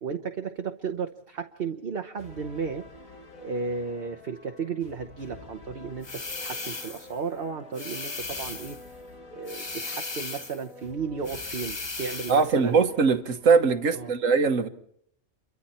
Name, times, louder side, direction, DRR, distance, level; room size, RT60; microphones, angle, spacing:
voice 1, 0.0-2.8 3.4-8.8 9.3-12.8 13.9-14.1, right 5 dB, 45° right, 1.1 m, -34 dB
sound 1, 2.2-14.1, left 2 dB, 85° left, 2.8 m, -49 dB
sound 2, 6.0-7.1 7.7-8.8 9.5-10.6 11.2-12.5, left 3 dB, 25° left, 0.9 m, -36 dB
voice 2, 12.3-14.7, right 5 dB, 70° right, 1.6 m, -21 dB
28.5 x 23.5 x 4.3 m
omnidirectional pair, 1.4 m